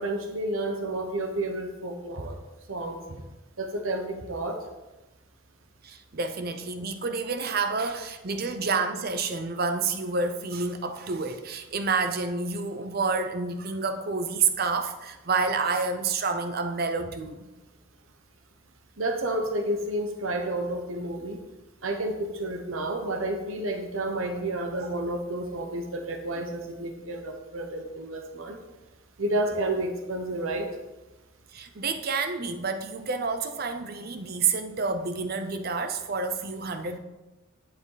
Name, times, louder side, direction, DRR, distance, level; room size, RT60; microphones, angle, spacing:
voice 1, 0.0-2.3 2.7-3.0 3.6-4.6 19.0-21.4 21.8-28.6 29.2-30.7, right 1 dB, 85° right, 4 dB, 1.2 m, -30 dB
voice 2, 5.8-17.5 24.7-24.9 31.5-37.0, right 4 dB, 50° right, 7 dB, 0.7 m, -29 dB
11.0 x 7.8 x 4.0 m, 1.1 s
head